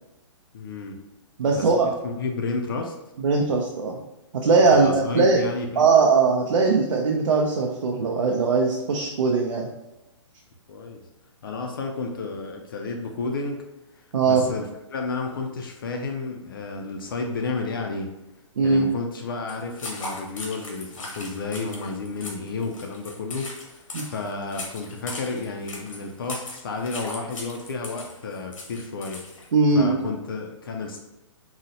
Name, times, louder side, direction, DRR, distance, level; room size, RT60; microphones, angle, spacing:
voice 1, 0.5-1.0 1.5-2.9 4.7-6.0 8.9-9.0 10.7-11.0 11.4-13.6 13.9-18.1 18.6-29.2 29.7-31.0, left 3 dB, 45° left, 2 dB, 0.4 m, -31 dB
voice 2, 1.4-1.9 3.2-4.0 4.3-5.4 5.8-9.7 14.1-14.5 18.6-18.9 23.9-24.0 29.5-30.0, right 4 dB, 85° right, -1 dB, 0.6 m, -20 dB
sound 1, 19.5-29.5, left 2 dB, 90° left, 1.0 m, -38 dB
3.9 x 2.1 x 2.7 m, 0.98 s
hypercardioid pair, 165°, 16 cm